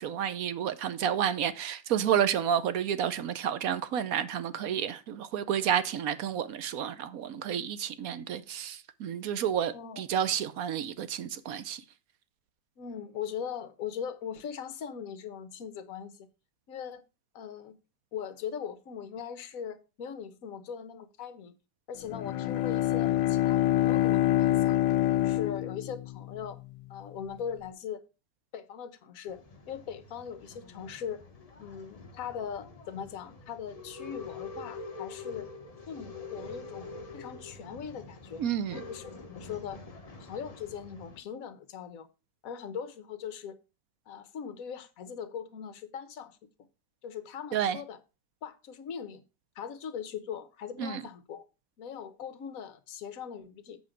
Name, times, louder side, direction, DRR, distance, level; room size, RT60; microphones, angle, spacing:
voice 1, 0.0-11.8 38.4-38.8 47.5-47.8 50.8-51.0, right 9 dB, 65° right, 1.0 m, -30 dB
voice 2, 9.7-10.0 12.8-16.3 16.7-17.0 17.3-17.8 18.1-21.5 21.9-24.8 25.2-26.6 26.9-28.0 28.5-31.2 31.6-35.5 35.9-38.4 38.7-39.8 40.2-42.1 42.4-43.6 44.1-46.4 47.0-48.0 48.4-49.2 49.5-51.4 51.8-53.8, left 7 dB, 55° left, 1.3 m, -40 dB
Bowed string instrument, 22.0-26.4, left 14 dB, 85° left, 1.3 m, -26 dB
Male speech man speaking / Chatter / Rattle, 29.3-41.2, left 4 dB, 30° left, 0.8 m, -46 dB
8.0 x 5.2 x 5.0 m
omnidirectional pair, 1.9 m